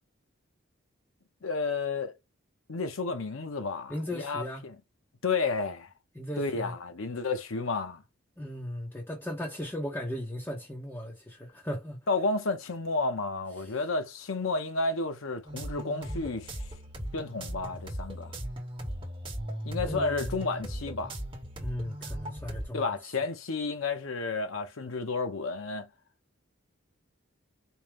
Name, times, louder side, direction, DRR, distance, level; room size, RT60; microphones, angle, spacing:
voice 1, 1.4-2.1 2.7-4.8 5.2-5.9 6.4-8.0 12.1-16.6 17.1-18.4 19.6-21.2 22.7-25.9, left 3 dB, 90° left, 0.7 m, -31 dB
voice 2, 3.9-4.6 6.1-6.7 8.4-12.0 13.6-13.8 19.8-20.3 21.6-22.9, left 1 dB, 10° left, 0.7 m, -37 dB
sound 1, 15.4-22.7, equal, 25° right, 1.0 m, -38 dB
4.5 x 2.1 x 3.3 m
head